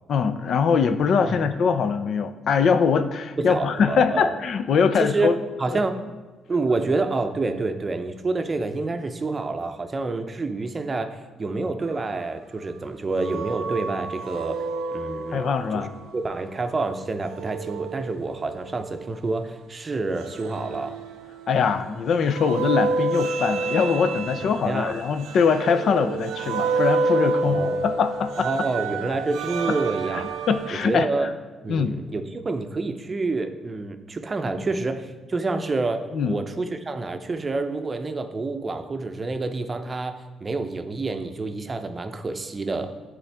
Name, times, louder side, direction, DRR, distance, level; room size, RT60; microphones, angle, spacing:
voice 1, 0.1-5.4 5.7-5.8 15.3-15.9 21.5-28.5 30.5-31.1 31.7-31.9 36.1-36.4, left 6 dB, 65° left, 10 dB, 0.4 m, -22 dB
voice 2, 3.4-4.4 5.0-6.0 6.5-14.6 14.9-20.9 24.4-25.0 27.4-27.9 28.4-30.3 30.8-31.3 31.6-42.9, right 3 dB, 30° right, 7 dB, 0.6 m, -28 dB
sound 1, 13.2-16.1 17.3-19.0 20.2-21.8 22.3-30.9, right 3 dB, 90° right, 0.5 m, -29 dB
10.5 x 3.8 x 3.4 m, 1.3 s
cardioid pair, 90°, 0 cm